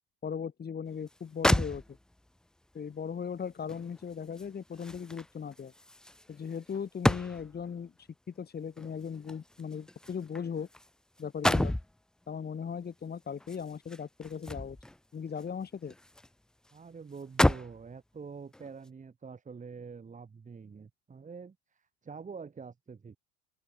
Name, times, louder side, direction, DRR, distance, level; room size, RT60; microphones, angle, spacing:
voice 1, 0.2-1.8 2.7-5.7 6.3-7.9 8.4-10.7 11.2-11.7 12.3-14.8 15.1-15.9, left 7 dB, 25° left, 5.1 m, -38 dB
sound 1, 1.1-1.2 1.4-2.3 3.7-7.7 8.8-10.9 11.2-11.9 13.4-15.0 15.4-16.3 16.7-16.8 17.2-17.8 18.5-18.7, left 1 dB, ahead, 0.4 m, -31 dB
voice 2, 16.7-21.6 22.0-23.2, right 5 dB, 20° right, 3.4 m, -46 dB
open air
figure-of-eight pair, 70°, 35 cm